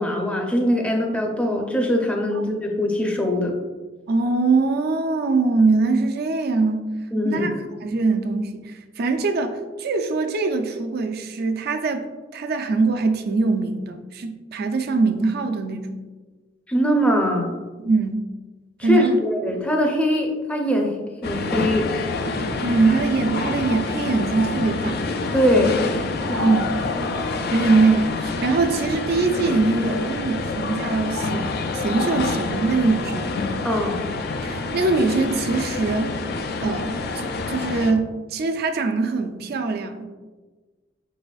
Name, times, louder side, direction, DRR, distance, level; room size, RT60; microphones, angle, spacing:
voice 1, 0.0-3.5 7.1-7.4 16.7-17.5 18.8-20.9 21.2-21.9 25.3-25.8 26.3-26.5 33.6-34.0, equal, 5° left, 1 dB, 0.6 m, -22 dB
voice 2, 4.1-6.8 7.2-12.1 12.3-16.0 17.8-18.2 18.8-19.2 22.6-25.1 26.4-26.7 27.5-33.3 34.4-36.1 36.6-36.9 37.2-40.1, right 3 dB, 55° right, 6 dB, 0.4 m, -22 dB
sound 1, 21.2-37.9, left 3 dB, 55° left, 0.4 m, -27 dB
5.5 x 4.1 x 2.4 m, 1.3 s
head